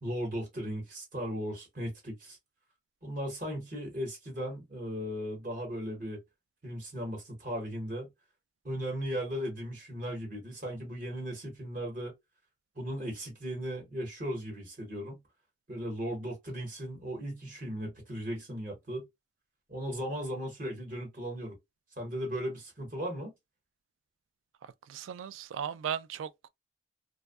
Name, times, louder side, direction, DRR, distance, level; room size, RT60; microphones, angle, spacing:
voice 1, 0.0-2.4 3.0-6.2 6.6-8.1 8.6-12.1 12.8-15.2 15.7-19.1 19.7-21.5 22.0-23.3, equal, 45° right, 0.9 m, -37 dB
voice 2, 24.6-26.5, right 8 dB, 90° right, 0.3 m, -37 dB
2.5 x 2.1 x 2.3 m
head